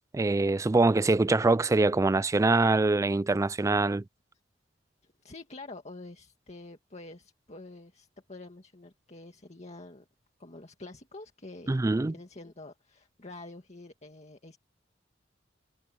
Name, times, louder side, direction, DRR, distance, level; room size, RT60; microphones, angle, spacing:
voice 1, 0.0-4.0 11.7-12.1, right 3 dB, 15° right, 0.3 m, -24 dB
voice 2, 5.2-10.1 10.4-14.6, left 2 dB, 35° left, 2.0 m, -47 dB
head